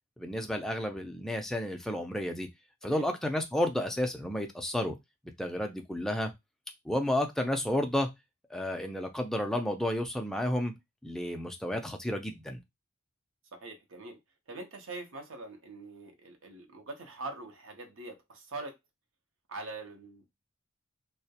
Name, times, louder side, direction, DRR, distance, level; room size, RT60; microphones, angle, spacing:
voice 1, 0.2-2.5 2.8-5.0 5.4-6.3 6.9-8.1 8.5-10.7 11.0-12.6, left 1 dB, ahead, 0.3 m, -31 dB
voice 2, 13.5-14.2 14.5-18.8 19.5-20.3, right 2 dB, 70° right, 0.6 m, -43 dB
2.2 x 2.1 x 2.7 m
head